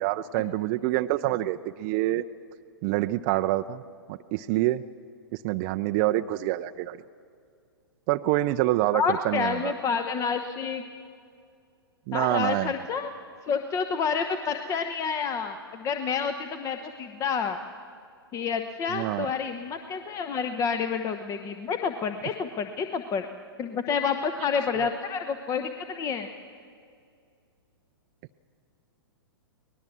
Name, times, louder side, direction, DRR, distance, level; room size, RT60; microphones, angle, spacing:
voice 1, 0.0-2.2 2.8-3.8 4.1-4.8 5.3-7.0 8.1-9.7 12.1-12.7 18.9-19.3 24.7-24.9, right 16 dB, 35° right, 8 dB, 0.5 m, -26 dB
voice 2, 8.9-10.8 12.1-13.1 13.4-17.6 18.3-23.3 23.6-26.3, left 6 dB, 25° left, 8 dB, 0.9 m, -29 dB
24.0 x 19.0 x 7.3 m, 2.3 s
figure-of-eight pair, 110°, 13 cm